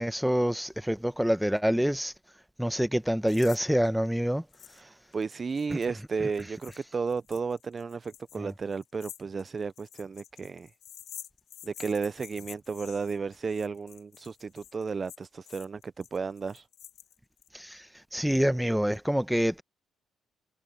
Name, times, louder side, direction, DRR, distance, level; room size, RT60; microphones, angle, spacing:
voice 1, 0.0-2.1 2.6-4.4 5.7-5.8 8.3-8.5 17.5-17.8 18.1-19.6, equal, ahead, 1.0 m, -26 dB
sound 1, 3.3-3.6 3.8-3.9 4.5-4.8 5.1-17.5, left 10 dB, 75° left, 1.7 m, -49 dB
voice 2, 4.8-10.7 11.6-16.7, right 5 dB, 35° right, 0.5 m, -33 dB
cardioid pair, 90°, 0 cm